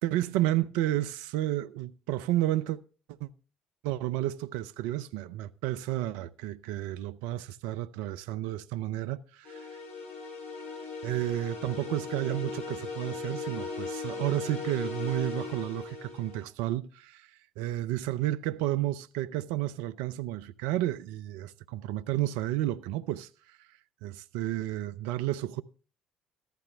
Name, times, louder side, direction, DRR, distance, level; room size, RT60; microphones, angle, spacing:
voice 1, 0.0-2.8 3.2-3.3 3.8-9.7 11.0-17.3 17.6-23.6 24.0-25.6, right 14 dB, 80° right, 0.7 m, -31 dB
sound 1, 9.4-16.4, left 4 dB, 65° left, 6.5 m, -38 dB
14.5 x 11.5 x 3.5 m
hypercardioid pair, 60°, 3 cm